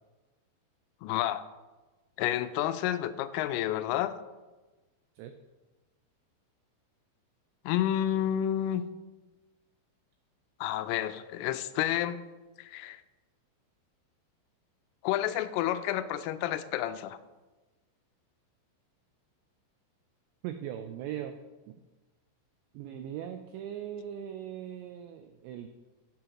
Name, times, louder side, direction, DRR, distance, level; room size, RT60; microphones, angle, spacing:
voice 1, 1.0-1.5 2.2-4.2 7.7-8.8 10.6-12.2 12.6-13.0 15.0-17.2, left 12 dB, 90° left, 12 dB, 3.1 m, -30 dB
voice 2, 20.4-21.4 21.7-21.8 22.7-25.7, right 10 dB, 90° right, 7 dB, 2.5 m, -39 dB
14.0 x 8.2 x 2.9 m, 1.2 s
omnidirectional pair, 5.7 m